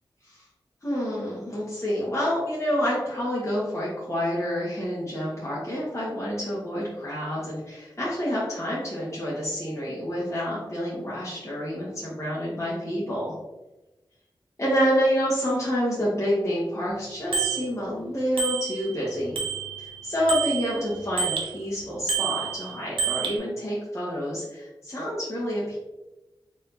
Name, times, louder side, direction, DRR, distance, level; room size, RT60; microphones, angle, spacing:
voice 1, 0.8-13.3 14.6-19.4 19.8-25.8, equal, 35° left, -9 dB, 1.3 m, -28 dB
Bicycle bell, 17.3-17.6 18.4-19.0 19.4-21.5 22.1-23.4, right 6 dB, 90° right, 0.7 m, -28 dB
4.4 x 3.6 x 2.7 m, 1.0 s
wide cardioid pair, 65°, 9 cm